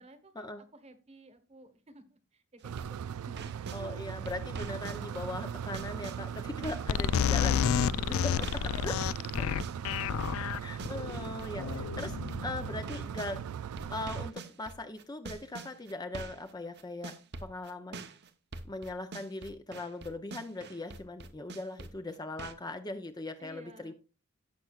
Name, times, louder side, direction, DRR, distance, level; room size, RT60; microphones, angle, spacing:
voice 1, 0.0-3.5 8.1-8.3 8.6-10.2 23.4-23.9, right 2 dB, 30° right, 10 dB, 1.2 m, -54 dB
sound 1, 2.6-3.8 4.3-7.0 7.2-13.4 13.8-22.5, right 3 dB, 50° right, 0.8 m, -45 dB
sound 2, 2.6-14.3, right 8 dB, 80° right, 0.3 m, -39 dB
voice 2, 3.7-8.5 8.8-8.9 10.6-13.6 13.9-17.1 17.4-18.1 18.6-23.9, left 2 dB, 20° left, 7 dB, 0.6 m, -40 dB
sound 3, 6.9-13.3, left 8 dB, 65° left, 0.3 m, -30 dB
17.5 x 5.9 x 2.4 m, 0.32 s
head